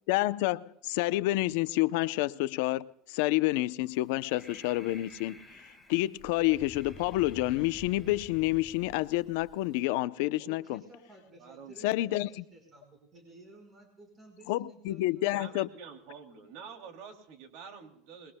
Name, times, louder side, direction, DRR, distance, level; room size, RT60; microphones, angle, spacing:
voice 1, 0.1-5.4 5.9-10.8 11.8-12.3 14.5-15.7, left 17 dB, 75° left, 0.6 m, -29 dB
Breathing, 3.8-9.8, left 1 dB, 5° right, 1.7 m, -51 dB
voice 2, 10.4-15.6, right 1 dB, 20° right, 5.0 m, -54 dB
voice 3, 11.4-11.9 15.3-18.3, right 6 dB, 60° right, 2.7 m, -47 dB
27.0 x 22.0 x 2.2 m
cardioid pair, 160°, 0 cm